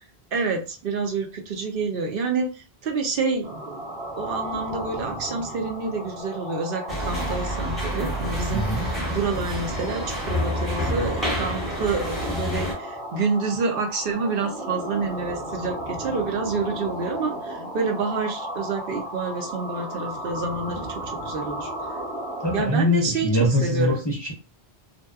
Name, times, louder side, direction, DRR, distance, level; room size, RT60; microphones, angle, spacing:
voice 1, 0.3-3.8 4.2-21.7 22.5-23.3 23.6-24.0, right 4 dB, 65° right, 3 dB, 0.7 m, -28 dB
sound 1, 3.4-22.6, right 1 dB, 85° right, 1.0 m, -34 dB
sound 2, 6.9-12.8, equal, ahead, 0.8 m, -28 dB
voice 2, 8.5-8.9 22.4-24.3, left 1 dB, 35° left, -2 dB, 0.4 m, -23 dB
2.7 x 2.2 x 2.3 m, 0.33 s
omnidirectional pair, 1.1 m